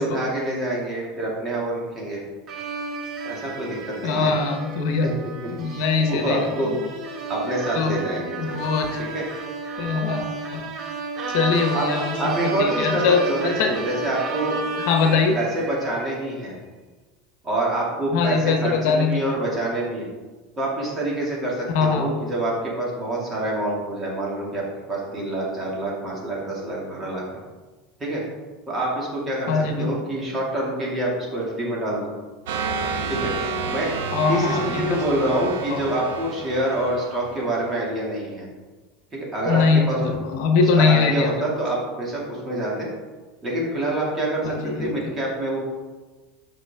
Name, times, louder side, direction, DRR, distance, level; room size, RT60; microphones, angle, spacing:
voice 1, 0.0-2.2 3.2-4.4 4.9-5.1 6.1-6.7 7.3-8.4 9.1-9.3 11.7-14.6 15.3-16.5 17.4-20.1 20.6-24.6 24.9-27.2 28.0-28.2 28.7-32.1 33.1-33.3 33.7-33.9 34.3-38.5 39.1-40.1 40.6-42.9 43.4-45.6, right 1 dB, 20° right, -4 dB, 2.4 m, -26 dB
sound 1, 2.5-16.2, right 4 dB, 35° right, 1.1 m, -32 dB
voice 2, 4.0-5.1 5.5-6.7 7.7-7.9 8.4-9.0 9.8-10.2 10.5-10.6 11.3-12.3 12.6-13.7 14.9-15.4 18.1-19.3 21.7-22.1 29.5-29.9 34.1-35.0 35.7-35.8 39.4-41.3 44.4-45.1, left 5 dB, 65° left, 4 dB, 1.1 m, -22 dB
sound 2, 32.5-37.9, right 4 dB, 90° right, 0.9 m, -30 dB
8.4 x 6.1 x 3.6 m, 1.3 s
supercardioid pair, 140°, 0 cm